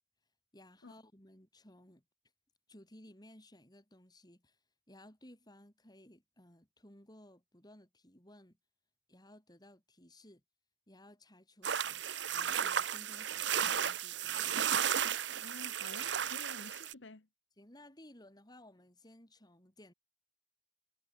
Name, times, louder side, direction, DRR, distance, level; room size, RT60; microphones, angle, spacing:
voice 1, 0.5-2.0 2.7-4.6 4.9-8.6 9.1-10.4 10.9-12.0 12.3-14.5 17.6-19.9, left 1 dB, 20° left, 6.6 m, -58 dB
sound 1, 11.6-16.9, right 8 dB, 70° right, 1.0 m, -34 dB
voice 2, 15.4-17.3, left 2 dB, 80° left, 1.4 m, -51 dB
head